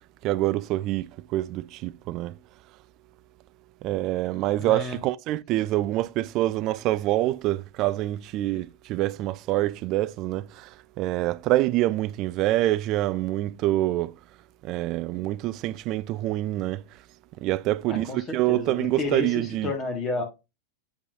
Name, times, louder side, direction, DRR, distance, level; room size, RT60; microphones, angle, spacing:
voice 1, 0.2-2.4 3.8-14.1 14.6-16.8 17.4-19.7, right 16 dB, 40° right, 0.3 m, -26 dB
voice 2, 4.5-5.0 17.9-20.2, left 2 dB, 25° left, 1.6 m, -31 dB
6.9 x 5.4 x 2.7 m
figure-of-eight pair, 90°, 0 cm